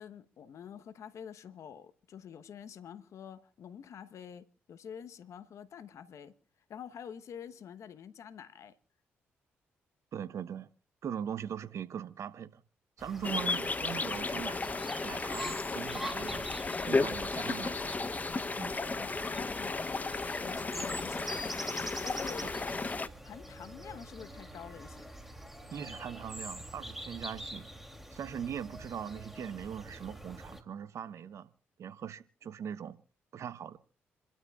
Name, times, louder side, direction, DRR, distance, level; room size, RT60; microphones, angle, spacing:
voice 1, 0.0-6.3 6.7-8.8 18.5-21.5 22.0-22.5 23.2-25.1, left 8 dB, 65° left, 1.1 m, -47 dB
voice 2, 10.1-10.7 11.0-12.6 13.0-16.5 16.8-17.9 18.6-18.7 22.4-22.5 25.7-27.7 28.1-31.5 31.8-33.0 33.3-33.8, right 8 dB, 60° right, 1.0 m, -40 dB
sound 1, 13.0-30.6, equal, 5° right, 2.9 m, -45 dB
sound 2, 13.2-23.1, left 3 dB, 30° left, 0.8 m, -34 dB
29.0 x 12.5 x 2.4 m
hypercardioid pair, 45°, 5 cm